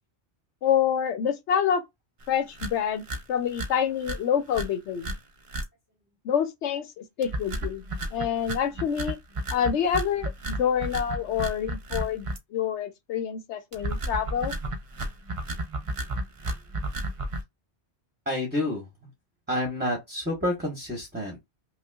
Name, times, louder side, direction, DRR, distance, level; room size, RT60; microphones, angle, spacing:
voice 1, 0.6-1.8 2.3-3.0 3.3-5.2 6.2-9.2 9.5-14.5, left 8 dB, 80° left, 0.9 m, -27 dB
sound 1, 2.2-2.3 2.5-2.7 3.0-3.2 3.5-3.7 4.0-4.2 4.5-4.7 5.0-5.2 5.5-5.6 7.2-12.4 13.7-17.4, right 1 dB, 40° right, 0.5 m, -32 dB
voice 2, 18.3-18.9 19.5-21.5, left 1 dB, 10° right, 1.0 m, -29 dB
5.4 x 2.2 x 2.3 m
omnidirectional pair, 1.1 m